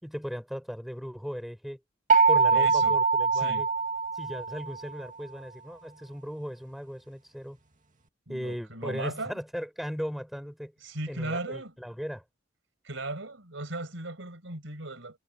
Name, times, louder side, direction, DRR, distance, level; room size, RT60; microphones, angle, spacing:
voice 1, 0.0-1.8 2.3-3.7 4.1-7.6 8.3-10.7 11.1-12.2, equal, ahead, 5.7 m, -37 dB
sound 1, 2.1-4.9, right 4 dB, 40° right, 2.3 m, -23 dB
voice 2, 2.5-3.0 3.3-3.6 8.3-9.4 10.8-11.7 12.8-15.2, right 2 dB, 70° right, 5.9 m, -37 dB
head